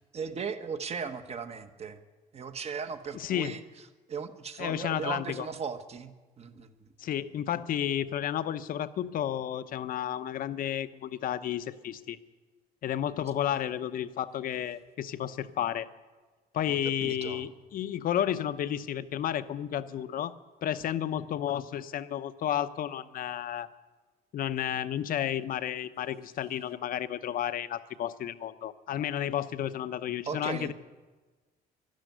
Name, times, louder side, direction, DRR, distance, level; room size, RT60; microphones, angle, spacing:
voice 1, 0.1-2.0 2.3-3.6 4.1-6.9 13.5-13.8 16.7-17.4 30.3-30.7, right 6 dB, 40° right, 9 dB, 1.1 m, -37 dB
voice 2, 3.1-3.5 4.6-5.5 7.0-12.2 12.8-15.9 16.5-20.3 20.6-23.7 24.3-30.7, left 10 dB, 55° left, 13 dB, 0.7 m, -32 dB
13.0 x 12.0 x 9.1 m, 1.3 s
cardioid pair, 110°, 17 cm